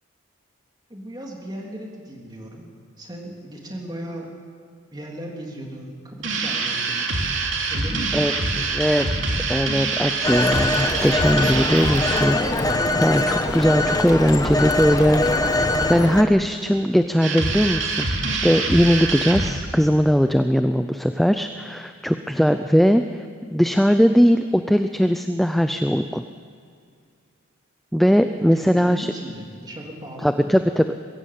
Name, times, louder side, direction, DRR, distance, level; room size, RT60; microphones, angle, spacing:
voice 1, 0.9-2.7 3.0-4.3 4.9-7.2 7.7-8.8 28.5-30.5, equal, 20° right, -1 dB, 3.2 m, -36 dB
sound 1, 6.2-12.3 17.2-19.5, right 3 dB, 55° right, 2.9 m, -25 dB
voice 2, 8.1-9.1 9.5-15.2 15.6-26.2 27.9-29.1 30.2-30.8, equal, ahead, 8 dB, 0.4 m, -20 dB
Telephone, 10.2-16.2, left 2 dB, 15° left, 1.0 m, -22 dB
21.5 x 16.5 x 7.7 m, 2.2 s
head